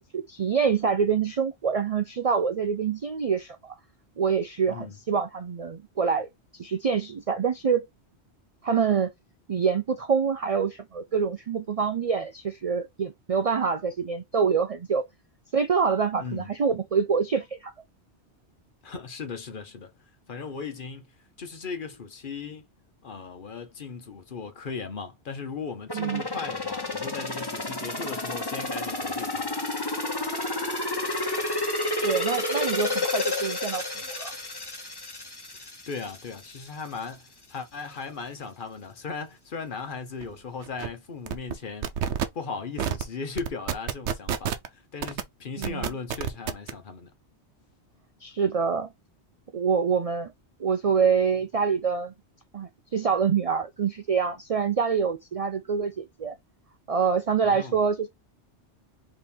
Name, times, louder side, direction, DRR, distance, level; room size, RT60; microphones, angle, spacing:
voice 1, 0.0-3.7 4.2-7.8 8.6-9.1 9.5-15.1 15.5-17.7 25.9-26.2 31.8-34.3 45.6-45.9 48.2-48.9 49.5-50.3 50.6-52.1 52.5-56.3 56.9-58.1, right 6 dB, 55° right, 0.4 m, -26 dB
voice 2, 18.8-19.9 20.3-21.1 21.4-22.7 23.0-29.5 35.5-41.9 42.3-47.1 57.4-57.8, left 5 dB, 50° left, 0.9 m, -37 dB
sound 1, 25.9-36.6 37.0-37.1, left 2 dB, 20° left, 1.0 m, -30 dB
sound 2, 40.2-40.3 40.6-40.9 41.3-41.6 41.8-42.3 42.8-43.0 43.4-44.7 45.0-45.2 45.6-46.7, right 8 dB, 85° right, 1.0 m, -28 dB
4.2 x 3.1 x 3.4 m
omnidirectional pair, 1.2 m